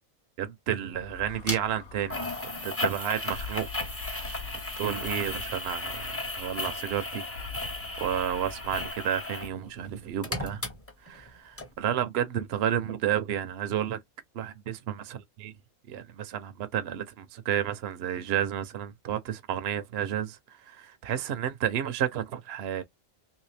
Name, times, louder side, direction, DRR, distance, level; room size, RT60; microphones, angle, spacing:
voice 1, 0.4-3.7 4.1-4.4 4.8-7.3 8.0-10.6 11.0-14.0 14.3-15.5 15.9-22.8, right 10 dB, 60° right, 0.8 m, -31 dB
sound 1, 0.9-8.9, left 5 dB, 60° left, 0.7 m, -45 dB
sound 2, 1.5-1.6 2.1-9.5 9.8-11.3 11.6-11.7, left 2 dB, 15° left, 0.6 m, -35 dB
3.1 x 2.7 x 3.2 m
omnidirectional pair, 1.4 m